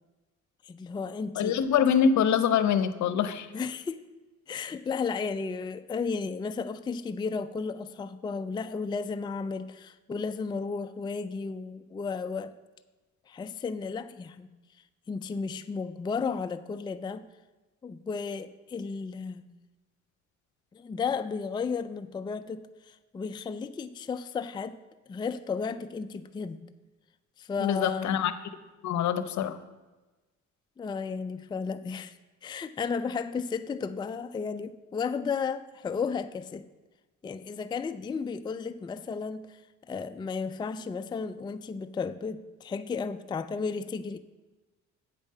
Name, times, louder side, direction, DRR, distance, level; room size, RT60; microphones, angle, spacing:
voice 1, 0.6-1.6 3.5-4.1 4.5-12.5 13.3-14.5 15.1-17.2 17.8-19.5 20.7-24.8 25.1-26.6 27.4-28.2 30.8-32.2 32.4-36.7 37.2-39.6 39.9-44.2, left 5 dB, 15° left, 10 dB, 0.3 m, -33 dB
voice 2, 1.4-3.5 27.6-28.3 28.8-29.6, left 7 dB, 70° left, 12 dB, 0.7 m, -24 dB
8.1 x 5.1 x 6.6 m, 1.2 s
cardioid pair, 90°, 30 cm